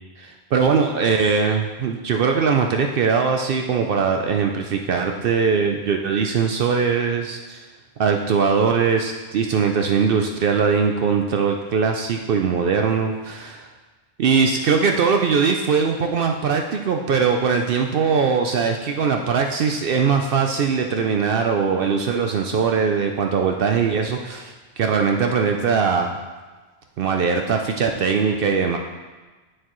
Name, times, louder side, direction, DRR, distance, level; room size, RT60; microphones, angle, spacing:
voice 1, 0.2-7.6 8.0-13.7 14.2-26.2 27.0-28.8, right 5 dB, 65° right, 3 dB, 0.7 m, -21 dB
9.3 x 6.5 x 3.0 m, 1.3 s
omnidirectional pair, 1.1 m